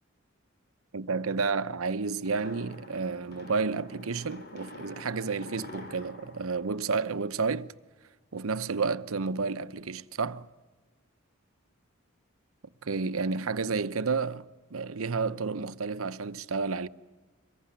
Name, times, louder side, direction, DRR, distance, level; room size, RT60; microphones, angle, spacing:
voice 1, 0.9-7.7 8.3-10.5 12.8-16.9, right 4 dB, 85° right, 0.8 m, -31 dB
sound 1, 2.2-7.6, left 2 dB, 50° left, 2.9 m, -47 dB
24.0 x 21.0 x 9.9 m
head